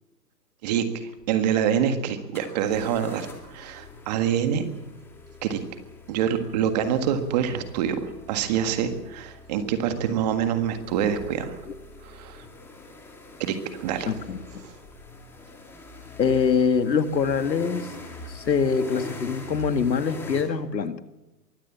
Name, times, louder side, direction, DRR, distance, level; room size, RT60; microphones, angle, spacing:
voice 1, 0.6-4.7 5.4-5.6 6.1-11.6 12.0-12.4 13.4-14.1, right 8 dB, 25° right, 9 dB, 1.7 m, -26 dB
sound 1, 1.2-1.3 2.3-20.4, left 2 dB, 5° left, 2.3 m, -43 dB
voice 2, 14.1-14.4 16.2-17.9 18.3-21.0, left 6 dB, 85° left, 9 dB, 2.2 m, -24 dB
23.5 x 16.5 x 7.2 m, 0.99 s
hypercardioid pair, 160°, 50 cm